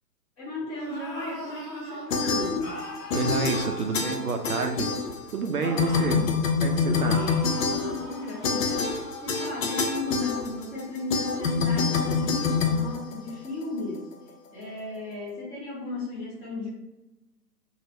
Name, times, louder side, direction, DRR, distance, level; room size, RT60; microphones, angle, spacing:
voice 1, 0.4-2.8 5.6-6.4 6.7-7.3 7.7-14.1 14.5-16.7, left 2 dB, 15° left, -6 dB, 1.0 m, -35 dB
sound 1, 0.7-2.1 2.6-4.9 5.6-6.3 7.0-9.4, equal, 75° left, 1.2 m, -41 dB
sound 2, 2.1-2.9 3.1-5.5 5.8-13.6, left 5 dB, 55° left, 0.5 m, -26 dB
voice 2, 3.1-4.9 5.3-6.2 6.6-7.2, right 4 dB, 65° right, 5 dB, 0.6 m, -28 dB
3.2 x 2.6 x 4.2 m, 1.0 s
figure-of-eight pair, 125°, 49 cm